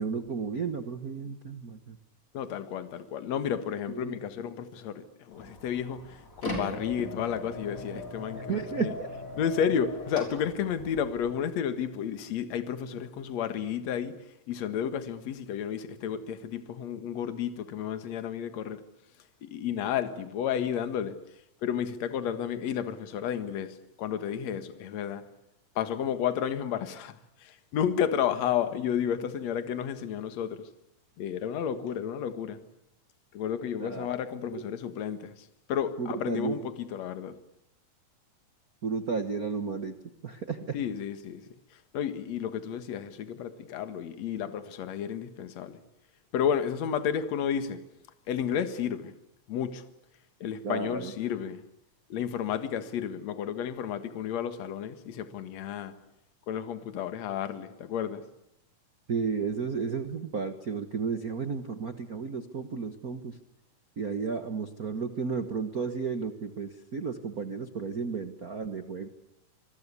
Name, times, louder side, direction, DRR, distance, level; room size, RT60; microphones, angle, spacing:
voice 1, 0.0-2.0 3.9-4.2 8.5-9.1 33.8-34.1 34.5-34.6 36.0-36.6 38.8-39.9 40.2-40.8 50.6-51.1 59.1-63.4 64.0-69.1, right 5 dB, 60° right, 0.9 m, -33 dB
voice 2, 2.3-8.9 9.4-18.8 19.4-21.2 21.6-25.2 25.8-30.7 31.2-32.6 33.3-37.4 40.7-45.8 46.3-47.8 48.3-49.1 49.5-49.8 50.4-51.6 52.1-55.9 56.5-58.2, left 8 dB, 60° left, 2.6 m, -32 dB
sound 1, 5.3-11.3, left 1 dB, 25° left, 6.5 m, -40 dB
26.0 x 21.5 x 8.3 m
omnidirectional pair, 3.8 m